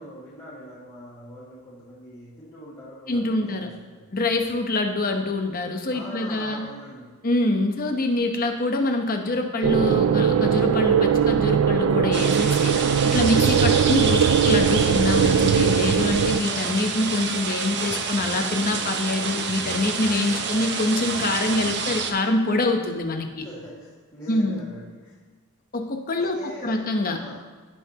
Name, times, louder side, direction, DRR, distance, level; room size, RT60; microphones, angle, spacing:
voice 1, 0.0-4.2 5.9-7.1 23.4-25.2 26.2-26.9 27.1-27.3, equal, 20° left, -10 dB, 1.8 m, -42 dB
voice 2, 3.1-3.7 4.1-6.7 7.2-12.8 13.0-23.5 24.3-24.6 25.7-27.2, left 2 dB, 40° left, 4 dB, 0.9 m, -25 dB
sound 1, 9.6-16.4, right 7 dB, 80° right, 0.4 m, -20 dB
sound 2, 12.1-22.1, right 5 dB, 50° right, 0.8 m, -28 dB
16.0 x 5.8 x 2.9 m, 1.4 s
head